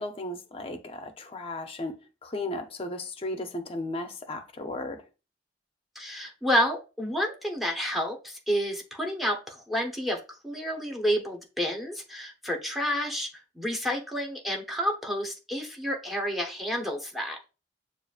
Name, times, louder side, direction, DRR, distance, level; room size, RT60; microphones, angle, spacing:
voice 1, 0.0-5.0, left 2 dB, 30° left, 0.5 m, -35 dB
voice 2, 5.9-17.4, equal, ahead, 0.7 m, -30 dB
6.7 x 2.4 x 2.3 m
head